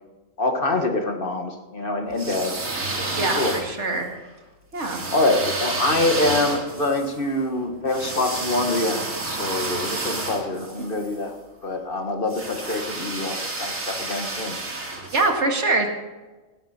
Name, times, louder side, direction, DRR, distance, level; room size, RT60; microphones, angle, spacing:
voice 1, 0.4-2.6 2.9-3.6 5.1-14.6, left 2 dB, 40° left, 4 dB, 1.7 m, -25 dB
sound 1, 2.1-4.0 4.8-11.1 12.3-15.3, right 2 dB, 70° right, 2.9 m, -30 dB
voice 2, 3.2-4.1 4.7-5.0 15.1-15.9, right 2 dB, 55° right, 2 dB, 2.4 m, -23 dB
17.5 x 12.0 x 4.3 m, 1.2 s
omnidirectional pair, 1.4 m